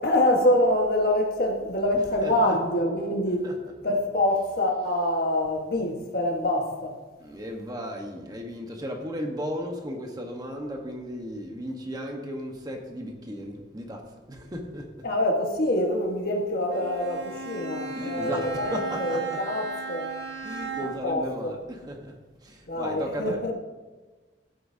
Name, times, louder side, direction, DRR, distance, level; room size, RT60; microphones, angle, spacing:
voice 1, 0.0-3.5 3.8-7.0 15.0-20.1 21.0-21.5 22.7-23.5, left 1 dB, 55° left, 1.4 m, -25 dB
voice 2, 2.2-2.6 3.4-3.7 7.2-14.9 17.9-19.4 20.4-22.1 22.4-23.4, equal, 20° right, 1.2 m, -35 dB
Bowed string instrument, 16.7-21.2, right 5 dB, 70° right, 1.6 m, -35 dB
15.5 x 8.6 x 2.8 m
head